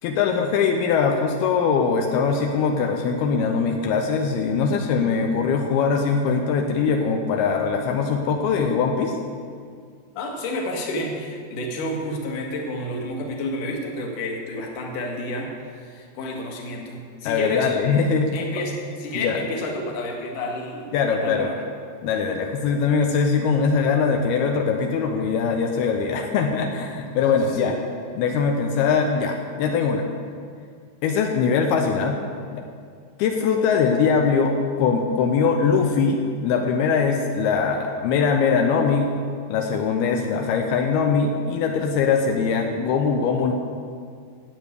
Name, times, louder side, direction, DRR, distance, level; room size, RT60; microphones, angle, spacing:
voice 1, 0.0-9.2 17.2-18.3 19.2-19.4 20.9-21.5 22.0-27.7 28.2-30.1 31.0-32.2 32.5-32.6 33.2-39.1 39.5-43.5, left 5 dB, 85° left, 3 dB, 2.8 m, -22 dB
voice 2, 10.1-17.7 18.3-21.6 27.5-27.7 33.6-33.7, left 1 dB, 60° left, 0 dB, 3.0 m, -30 dB
12.5 x 8.4 x 8.2 m, 2.1 s
omnidirectional pair, 4.4 m